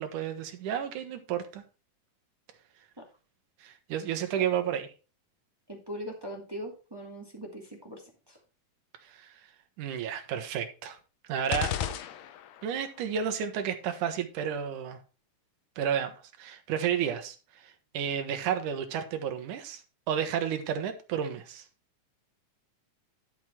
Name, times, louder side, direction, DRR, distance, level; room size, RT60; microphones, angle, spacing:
voice 1, 0.0-1.6 3.6-4.9 9.0-9.3 9.8-11.0 11.3-11.7 12.6-15.0 15.8-19.8 20.1-21.7, right 8 dB, 85° right, 7 dB, 2.8 m, -32 dB
voice 2, 5.7-8.4, equal, 10° right, 0 dB, 1.9 m, -41 dB
sound 1, 11.5-12.8, left 10 dB, 85° left, 2.4 m, -33 dB
11.5 x 6.3 x 4.4 m, 0.32 s
omnidirectional pair, 3.5 m